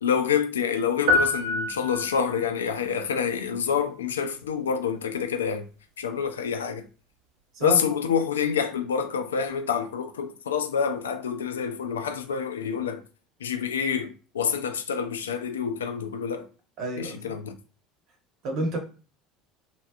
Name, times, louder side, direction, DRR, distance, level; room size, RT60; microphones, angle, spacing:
voice 1, 0.0-5.7 6.0-6.9 7.6-13.0 13.4-16.5 17.0-17.6, left 7 dB, 85° left, 0.5 m, -27 dB
sound 1, 1.1-2.5, left 2 dB, 80° right, 0.9 m, -25 dB
voice 2, 16.8-17.4 18.4-18.8, right 2 dB, 60° right, 1.1 m, -30 dB
3.0 x 2.9 x 2.4 m
hypercardioid pair, 70°, 0 cm